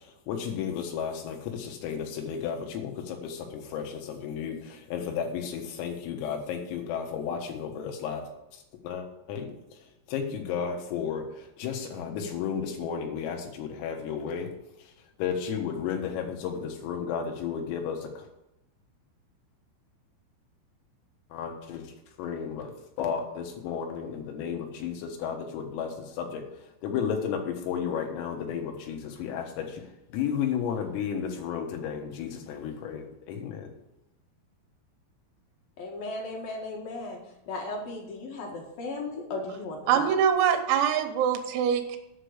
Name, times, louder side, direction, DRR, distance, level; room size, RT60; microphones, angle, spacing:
voice 1, 0.3-8.2 8.8-9.5 10.1-11.2 11.6-14.5 15.2-18.2 21.3-21.9 22.2-26.4 26.8-29.8 30.1-33.7, left 7 dB, 80° left, 3 dB, 4.1 m, -33 dB
voice 2, 35.8-37.2 37.5-40.2, left 2 dB, 60° left, 0 dB, 2.6 m, -36 dB
voice 3, 39.9-42.0, right 8 dB, 85° right, 7 dB, 3.7 m, -24 dB
9.1 x 6.8 x 8.0 m, 0.87 s
omnidirectional pair, 5.9 m